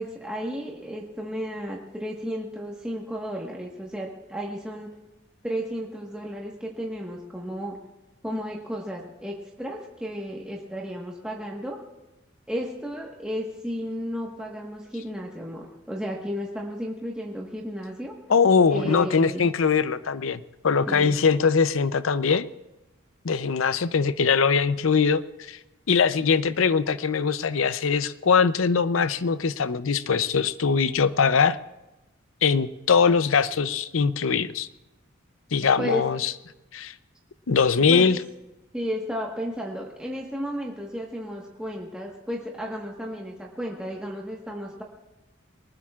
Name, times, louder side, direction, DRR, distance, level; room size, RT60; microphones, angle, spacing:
voice 1, 0.0-4.9 5.4-7.8 8.2-11.8 12.5-18.1 18.7-19.5 20.9-21.1 35.8-36.0 37.9-38.1 38.7-44.8, equal, 5° right, -3 dB, 1.4 m, -33 dB
voice 2, 18.3-22.5 23.2-25.6 25.9-31.6 32.4-34.7 35.5-36.3 36.7-36.9 37.5-38.2, left 5 dB, 80° left, 14 dB, 0.6 m, -22 dB
23.0 x 20.0 x 2.4 m, 1.0 s
head